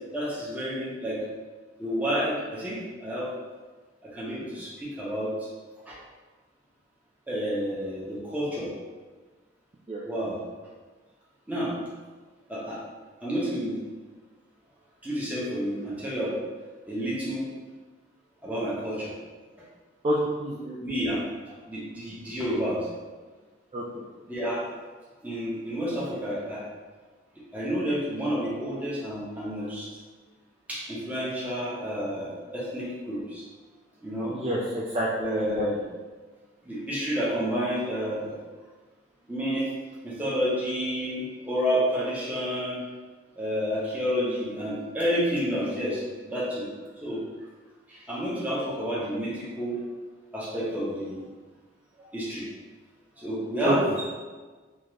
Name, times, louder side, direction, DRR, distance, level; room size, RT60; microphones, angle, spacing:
voice 1, 0.1-1.2 1.8-3.3 4.0-5.5 5.9-6.0 7.3-8.7 10.0-10.4 11.5-11.7 12.5-12.8 13.2-13.8 15.0-16.4 16.9-17.4 18.4-19.1 20.8-22.9 24.3-24.7 25.2-26.6 27.5-29.9 30.7-33.4 34.0-34.3 35.2-35.8 36.6-38.4 39.3-39.7 40.0-42.8 43.4-46.7 47.0-47.2 47.9-49.8 50.3-51.2 52.0-52.5 53.2-54.0, equal, 10° right, -7 dB, 0.8 m, -30 dB
voice 2, 20.0-20.8 23.7-23.8 34.3-35.1 35.4-35.7 53.6-54.0, right 1 dB, 30° right, -6 dB, 0.3 m, -28 dB
3.5 x 2.5 x 3.1 m, 1.4 s
head